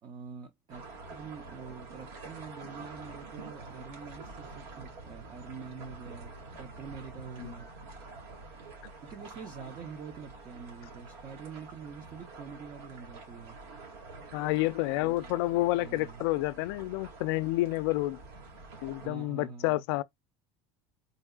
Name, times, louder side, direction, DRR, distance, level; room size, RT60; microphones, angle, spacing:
voice 1, 0.0-7.7 9.0-13.6 15.0-15.4 15.8-16.3 19.0-19.8, right 6 dB, 30° right, 0.5 m, -45 dB
sound 1, 0.7-19.1, right 3 dB, 75° right, 2.0 m, -47 dB
voice 2, 14.3-18.2 18.8-20.0, left 18 dB, 80° left, 0.4 m, -29 dB
3.9 x 3.7 x 2.3 m
cardioid pair, 160°, 13 cm